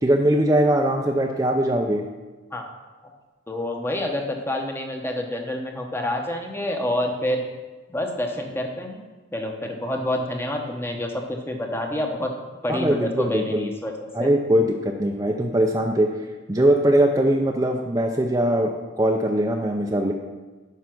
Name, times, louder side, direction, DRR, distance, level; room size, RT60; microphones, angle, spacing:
voice 1, 0.0-2.0 12.7-13.7 14.1-16.1 16.5-18.7 19.0-20.1, right 1 dB, 15° right, 2 dB, 0.5 m, -21 dB
voice 2, 3.5-7.4 7.9-9.0 9.3-12.3 12.6-14.3, left 1 dB, 10° left, 3 dB, 1.0 m, -28 dB
9.5 x 5.9 x 6.0 m, 1.3 s
head